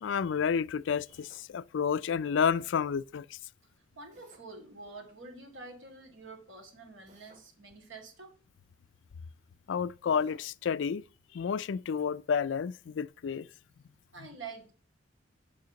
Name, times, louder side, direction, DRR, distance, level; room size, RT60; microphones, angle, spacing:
voice 1, 0.0-3.4 9.7-11.0 11.3-13.5 14.2-14.3, left 6 dB, 70° left, 0.4 m, -30 dB
Drill, 1.1-1.5 4.1-4.5 7.1-7.5 10.1-10.5, right 2 dB, 40° right, 2.1 m, -60 dB
voice 2, 4.0-8.3 14.1-14.7, right 3 dB, 80° right, 2.6 m, -47 dB
6.6 x 5.7 x 6.9 m
head